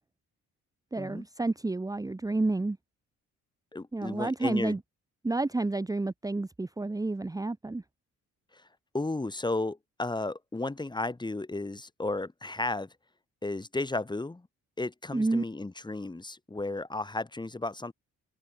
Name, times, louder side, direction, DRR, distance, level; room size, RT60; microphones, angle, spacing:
voice 1, 0.9-2.8 3.9-4.8 5.2-7.8 15.1-15.4, right 2 dB, 10° right, 1.1 m, -30 dB
voice 2, 3.7-4.8 8.5-8.7 8.9-12.9 13.4-14.5 14.8-17.9, left 2 dB, 15° left, 2.1 m, -34 dB
open air
cardioid pair, 90°, 30 cm